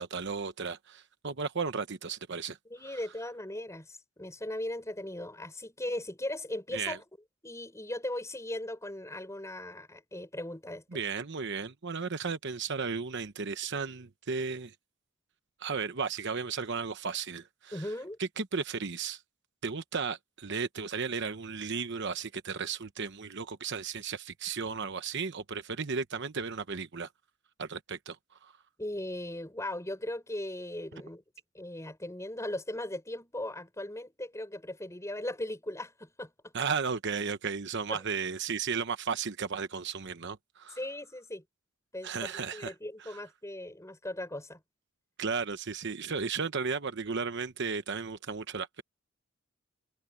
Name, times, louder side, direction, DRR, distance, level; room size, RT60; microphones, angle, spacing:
voice 1, 0.0-2.6 2.8-3.0 6.7-7.0 10.9-14.7 15.6-17.9 18.2-19.2 19.6-27.1 27.6-28.2 28.4-28.5 36.5-40.8 42.0-42.7 43.0-43.2 45.2-48.8, right 5 dB, 55° right, 1.0 m, -34 dB
voice 2, 2.7-7.0 7.4-11.0 17.7-18.2 28.8-31.2 31.5-36.5 37.9-38.0 40.8-41.4 41.9-44.6, left 1 dB, 15° left, 5.5 m, -38 dB
head